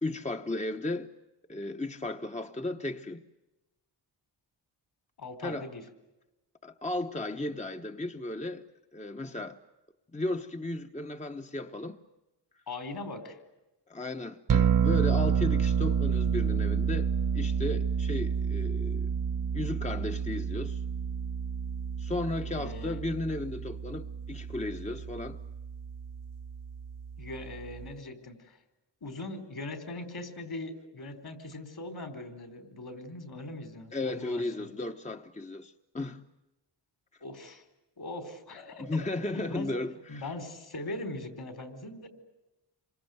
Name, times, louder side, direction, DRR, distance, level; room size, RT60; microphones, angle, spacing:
voice 1, 0.0-1.1 1.5-3.2 5.4-5.7 6.6-8.7 8.9-9.6 10.1-12.0 13.9-19.1 19.5-20.8 22.0-25.4 33.9-36.2 38.8-40.3, left 2 dB, 15° left, 1.1 m, -35 dB
voice 2, 5.2-5.8 12.7-13.4 22.5-23.0 27.2-28.6 29.0-34.7 37.2-37.6 38.0-38.9 39.3-39.7 40.1-42.1, left 2 dB, 55° left, 4.5 m, -40 dB
sound 1, 14.5-27.9, right 7 dB, 50° right, 0.9 m, -30 dB
27.5 x 24.5 x 8.0 m
cardioid pair, 85°, 43 cm